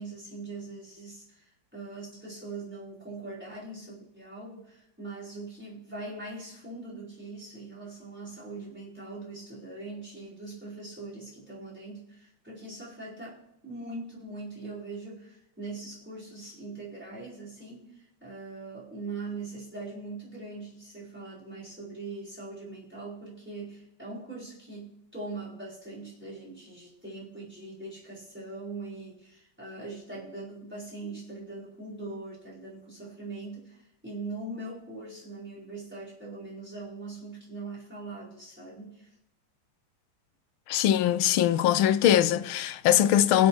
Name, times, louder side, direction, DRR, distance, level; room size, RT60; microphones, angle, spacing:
voice 1, 0.0-39.1, right 3 dB, 5° right, 4.7 m, -41 dB
voice 2, 40.7-43.5, left 11 dB, 80° left, 1.4 m, -22 dB
23.5 x 8.3 x 3.2 m
omnidirectional pair, 2.3 m